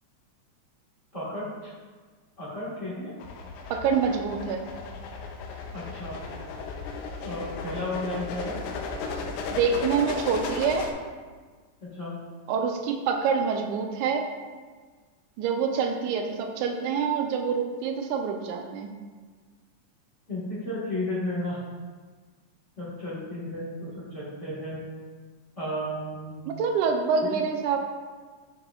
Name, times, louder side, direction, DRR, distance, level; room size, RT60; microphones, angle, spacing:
voice 1, 1.1-1.7 2.4-3.1 5.7-6.2 7.2-8.5 11.8-12.2 20.3-21.6 22.8-24.8 25.6-26.4 27.2-27.4, left 1 dB, 35° left, -9 dB, 1.3 m, -33 dB
sound 1, 3.2-10.9, left 4 dB, 80° left, 2.0 m, -35 dB
voice 2, 3.7-4.6 9.5-10.8 12.5-14.3 15.4-18.9 26.5-27.8, right 6 dB, 85° right, 4 dB, 2.1 m, -26 dB
9.5 x 4.8 x 2.3 m, 1.5 s
omnidirectional pair, 3.5 m